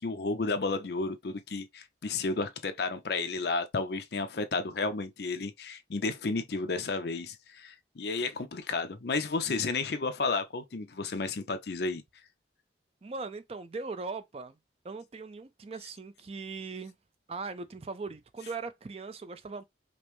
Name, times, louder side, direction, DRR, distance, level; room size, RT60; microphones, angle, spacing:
voice 1, 0.0-12.0, left 3 dB, 60° left, 0.5 m, -32 dB
voice 2, 13.0-14.6 14.8-16.9 17.3-19.6, right 4 dB, 30° right, 0.4 m, -39 dB
5.1 x 2.0 x 3.0 m
head